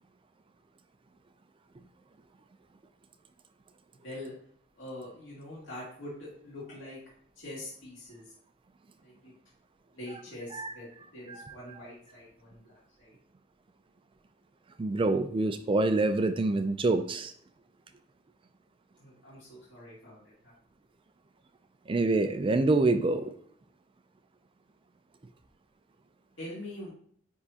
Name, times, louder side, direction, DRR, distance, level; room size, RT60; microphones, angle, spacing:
voice 1, 4.8-7.0 7.4-8.3 9.0-9.3 9.9-13.1 19.0-20.5 26.4-26.9, left 1 dB, 75° left, -8 dB, 2.3 m, -44 dB
voice 2, 14.8-17.3 21.9-23.3, right 2 dB, 25° right, 9 dB, 0.4 m, -26 dB
9.6 x 3.6 x 2.8 m, 0.64 s
head